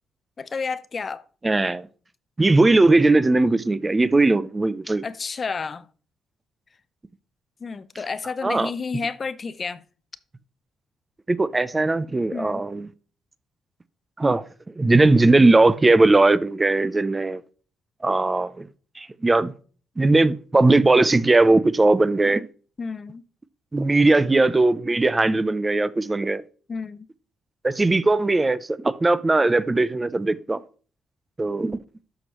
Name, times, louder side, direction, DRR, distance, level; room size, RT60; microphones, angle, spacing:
voice 1, 0.4-1.2 5.0-5.9 7.6-9.8 12.3-12.7 22.8-23.2 26.7-27.1, left 5 dB, 40° left, 0.5 m, -31 dB
voice 2, 1.4-1.9 2.4-5.1 8.4-8.7 11.3-12.9 14.2-17.4 18.0-18.7 19.0-19.5 20.0-22.5 23.7-26.4 27.6-30.6 31.4-31.8, right 2 dB, 20° right, 0.5 m, -19 dB
12.5 x 6.1 x 3.0 m
cardioid pair, 90°, 0 cm